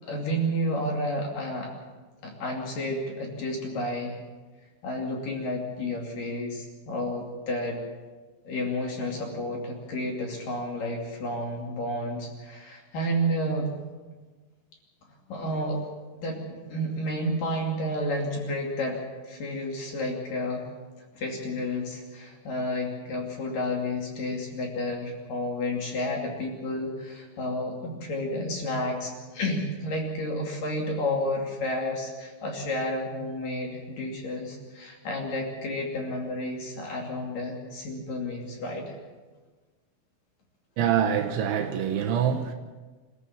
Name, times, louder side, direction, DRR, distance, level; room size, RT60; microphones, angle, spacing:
voice 1, 0.0-1.7 2.2-4.2 4.8-7.8 8.4-13.8 15.3-15.8 16.2-20.7 21.2-39.0, left 1 dB, 50° left, 3.6 m, -31 dB
voice 2, 40.8-42.5, right 9 dB, 70° right, 3.3 m, -25 dB
26.0 x 15.5 x 7.3 m
omnidirectional pair, 5.9 m